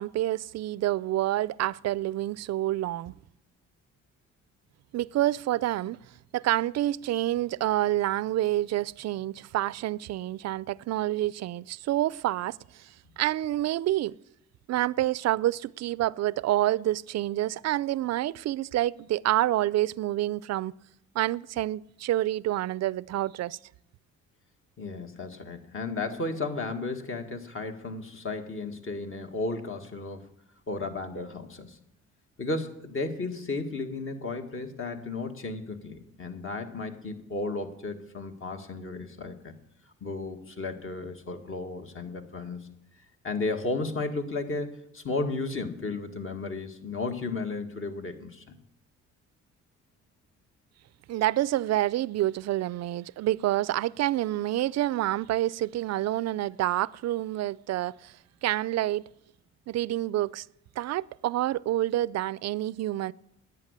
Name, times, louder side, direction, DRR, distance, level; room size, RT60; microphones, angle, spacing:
voice 1, 0.0-3.1 4.9-6.0 6.3-14.2 14.7-20.7 21.2-23.6 51.1-58.1 58.4-59.0 59.7-60.5 60.8-63.1, right 14 dB, 60° right, 0.4 m, -28 dB
voice 2, 24.8-30.2 30.7-31.8 32.4-39.5 40.0-42.7 43.2-48.5, left 3 dB, 45° left, 1.8 m, -34 dB
10.5 x 8.5 x 9.7 m
cardioid pair, 90°, 30 cm